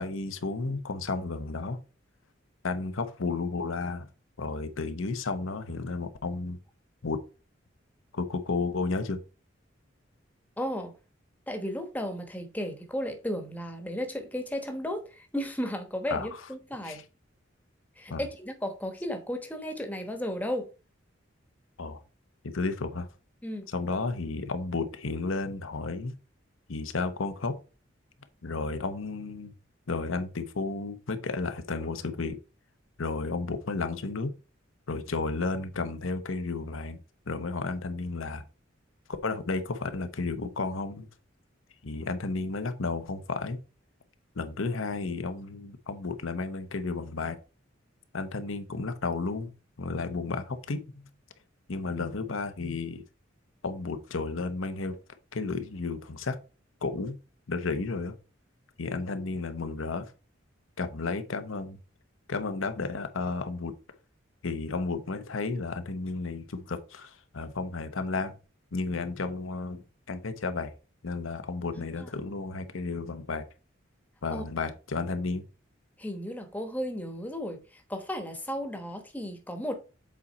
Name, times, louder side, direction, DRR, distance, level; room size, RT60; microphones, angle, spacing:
voice 1, 0.0-1.8 2.6-4.1 4.4-6.6 7.0-7.2 8.1-9.2 16.1-16.3 16.8-17.0 18.1-18.2 21.8-22.0 22.4-23.1 23.7-26.1 26.7-27.5 28.4-29.5 29.9-32.4 33.0-34.3 34.9-37.0 37.3-38.4 39.2-41.1 41.8-43.6 44.4-47.4 48.1-49.5 49.8-51.0 51.7-53.0 53.6-55.0 55.3-56.4 56.8-57.2 57.5-58.1 58.8-60.1 60.8-61.8 62.3-63.7 64.4-68.4 68.7-70.7 71.0-73.5 74.2-75.4, left 3 dB, 90° left, 0.9 m, -32 dB
voice 2, 10.6-10.9 11.5-17.0 18.0-20.7 23.4-23.7 71.7-72.1 74.3-74.4 76.0-79.8, equal, 10° left, 1.1 m, -34 dB
7.4 x 4.2 x 4.1 m
head